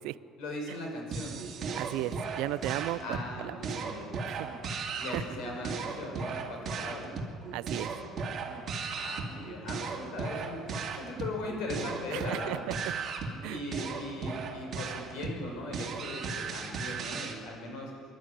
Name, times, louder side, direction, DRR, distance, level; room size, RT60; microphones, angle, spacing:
voice 1, 0.4-1.4 3.0-4.2 5.0-7.2 8.9-12.7 13.5-18.0, left 2 dB, 75° left, 1 dB, 6.1 m, -39 dB
sound 1, 1.1-17.4, right 4 dB, 35° right, 2.5 m, -37 dB
voice 2, 1.8-3.0 3.4-3.6 4.3-4.5 5.1-5.2 7.5-7.9 12.1-12.6 13.4-13.6, right 17 dB, 80° right, 18 dB, 0.5 m, -35 dB
25.0 x 12.0 x 8.9 m, 2.5 s
cardioid pair, 155°, 0 cm